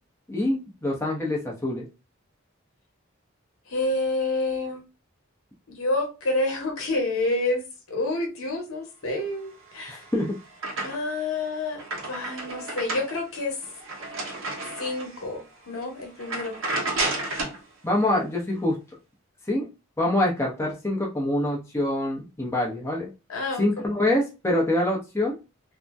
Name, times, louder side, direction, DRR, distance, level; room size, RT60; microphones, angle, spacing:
voice 1, 0.3-1.9 9.9-10.3 17.8-18.8 19.5-19.7 20.0-23.1 23.6-25.3, left 1 dB, 15° left, -2 dB, 0.7 m, -25 dB
voice 2, 3.7-4.8 5.7-7.6 7.9-10.1 10.8-13.6 14.8-16.6 23.3-23.6, left 2 dB, 80° left, 1 dB, 0.9 m, -28 dB
sound 1, 9.7-11.3 11.6-15.2 15.7-15.8 16.2-17.6, right 2 dB, 75° right, 1.0 m, -32 dB
2.6 x 2.1 x 3.3 m, 0.29 s
head